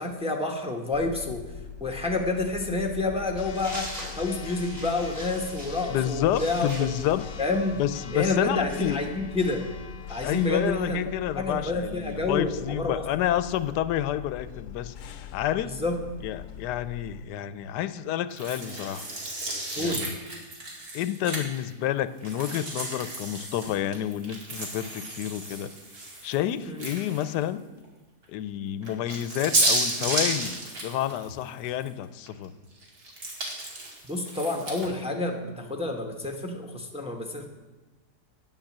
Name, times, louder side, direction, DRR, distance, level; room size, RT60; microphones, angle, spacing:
voice 1, 0.0-1.4 1.8-6.7 7.4-7.8 8.1-9.7 10.1-11.0 11.4-13.0 15.6-16.0 19.7-20.0 26.7-26.8 34.1-37.5, left 2 dB, 5° right, 2 dB, 0.9 m, -29 dB
Church bell, 0.9-17.2, left 9 dB, 65° left, 0.9 m, -41 dB
sound 1, 3.5-7.9, equal, 25° right, 5.2 m, -41 dB
voice 2, 5.9-7.3 7.8-9.0 10.2-15.7 16.2-19.1 19.8-20.1 20.9-25.7 26.2-27.6 28.3-32.5, left 11 dB, 85° left, 13 dB, 1.2 m, -29 dB
sound 2, 18.4-21.7 22.2-27.4 27.8-27.9 28.8-31.9 32.3-34.9, right 2 dB, 65° right, 2.7 m, -32 dB
9.2 x 9.1 x 7.3 m, 1.2 s
omnidirectional pair, 1.7 m